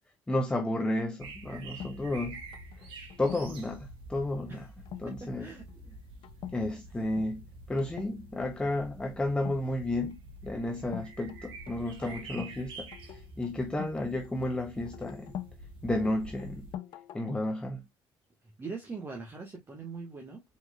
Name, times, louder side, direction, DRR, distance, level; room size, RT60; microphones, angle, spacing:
voice 1, 0.3-2.4 3.2-4.7 5.0-5.5 6.5-15.3 15.8-16.7 17.1-17.8, left 1 dB, 10° left, 0.8 m, -32 dB
sound 1, 1.2-16.8, right 2 dB, 70° right, 1.7 m, -48 dB
sound 2, 1.8-3.7 4.8-5.1 5.5-5.8 6.2-6.6 6.9-7.3 7.8-8.2 9.4-10.1 10.9-12.6 12.9-15.6 16.0-17.5, left 11 dB, 60° left, 0.7 m, -44 dB
voice 2, 5.0-5.7 18.6-20.4, right 4 dB, 25° right, 1.6 m, -41 dB
4.6 x 4.3 x 2.4 m
cardioid pair, 100°, 9 cm